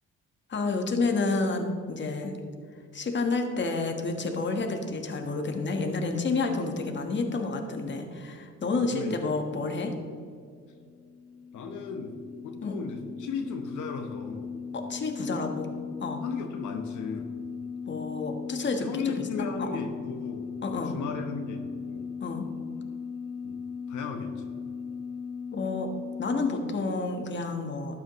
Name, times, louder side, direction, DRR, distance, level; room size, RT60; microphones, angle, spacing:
voice 1, 0.5-2.4 2.9-9.9 12.6-12.8 14.7-15.7 16.0-16.2 17.9-19.2 19.6-19.8 20.6-20.9 22.2-22.5 25.5-25.9 26.2-28.0, left 3 dB, 40° left, 4 dB, 1.4 m, -30 dB
sound 1, 10.6-26.8, left 6 dB, 20° left, 0.4 m, -38 dB
voice 2, 11.5-12.2 12.4-14.6 16.2-17.4 18.8-22.1 23.4-23.6 23.9-24.6, left 5 dB, 80° left, 4 dB, 1.0 m, -36 dB
12.5 x 8.6 x 3.1 m, 2.2 s
cardioid pair, 90°, 30 cm